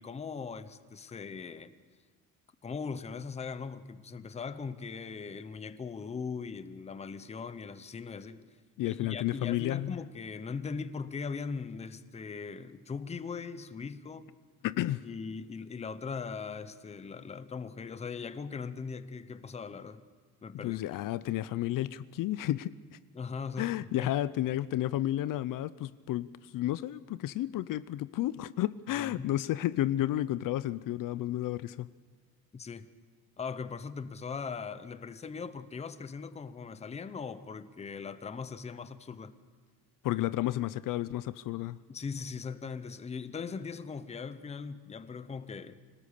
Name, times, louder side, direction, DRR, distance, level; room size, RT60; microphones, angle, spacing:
voice 1, 0.0-1.7 2.6-8.6 8.8-14.3 15.0-20.0 20.4-20.8 23.1-24.1 29.0-29.3 32.5-32.9 33.4-39.3 41.9-45.8, left 5 dB, 20° left, 13 dB, 0.7 m, -40 dB
voice 2, 8.8-10.0 14.6-15.0 20.5-23.0 23.6-31.9 40.0-41.8, left 14 dB, 65° left, 17 dB, 0.5 m, -32 dB
25.5 x 18.0 x 6.7 m, 1.5 s
cardioid pair, 170°, 35 cm